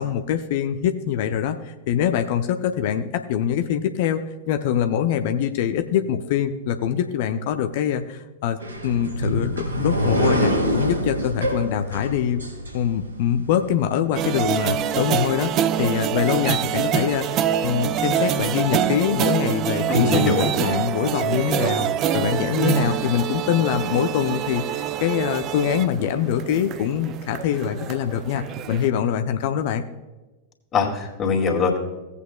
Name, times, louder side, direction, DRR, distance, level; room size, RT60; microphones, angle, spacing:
voice 1, 0.0-8.6 8.8-12.4 12.7-21.9 22.1-29.8, left 9 dB, 50° left, 7 dB, 0.6 m, -24 dB
sound 1, 8.6-13.3, equal, 80° right, 3.3 m, -25 dB
sound 2, 14.1-28.9, right 9 dB, 35° right, 0.4 m, -25 dB
voice 2, 19.9-20.4 30.7-31.8, left 4 dB, 25° left, 0 dB, 2.3 m, -21 dB
17.5 x 8.2 x 2.3 m, 1.1 s
figure-of-eight pair, 90°, 0 cm